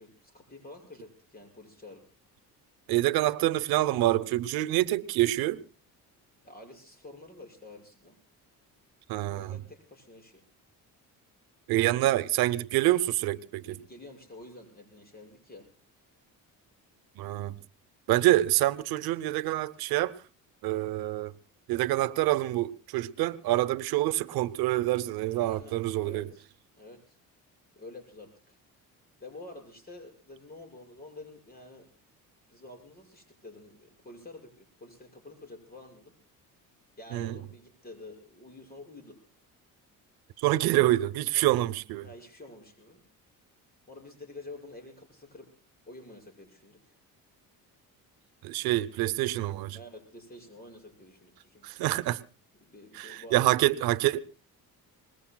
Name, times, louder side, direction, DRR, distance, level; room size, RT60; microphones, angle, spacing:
voice 1, 0.0-2.0 6.4-8.2 9.3-10.4 13.7-15.7 25.3-26.5 26.8-27.2 27.7-28.6 29.2-31.9 32.5-36.1 37.0-39.2 41.3-41.5 42.0-43.0 43.9-45.5 45.9-47.0 49.7-51.7 52.6-53.5, left 2 dB, 25° left, 6.3 m, -49 dB
voice 2, 2.9-5.6 9.1-9.6 11.7-13.8 17.2-17.6 18.1-20.2 20.6-21.3 21.7-26.3 37.1-37.4 40.4-42.0 48.4-49.8 51.6-52.2 52.9-54.2, right 16 dB, 90° right, 0.8 m, -26 dB
25.0 x 20.5 x 2.3 m
cardioid pair, 115°, 36 cm